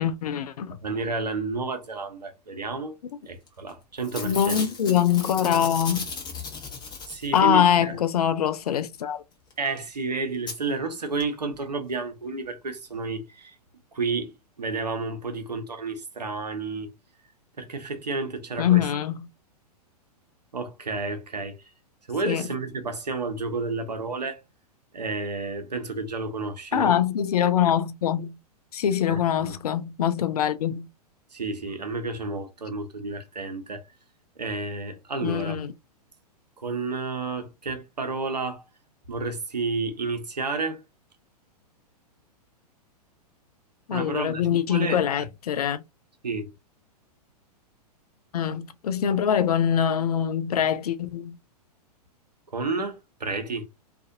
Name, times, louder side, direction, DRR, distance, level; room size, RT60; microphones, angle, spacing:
voice 1, 0.0-0.8 4.2-6.1 7.3-9.2 18.6-19.3 22.3-22.5 26.7-28.4 28.7-30.9 35.2-35.7 43.9-45.8 48.3-51.4, left 9 dB, 70° left, 0.5 m, -23 dB
voice 2, 0.8-3.0 3.3-4.6 7.1-8.0 9.6-13.5 13.9-16.9 17.6-18.8 20.5-21.6 22.1-24.4 24.9-27.0 29.1-29.5 31.3-33.8 34.4-35.6 36.6-38.6 39.1-40.8 43.9-45.3 46.2-46.5 52.5-53.7, right 3 dB, 90° right, 0.8 m, -31 dB
Packing tape duct tape / Tearing, 3.5-3.7 4.0-7.6 9.5-9.6 9.8-9.9 10.5-10.6 11.2-11.3 11.5-11.6, left 4 dB, 20° left, 1.0 m, -36 dB
2.5 x 2.5 x 2.5 m
figure-of-eight pair, 105°, 20 cm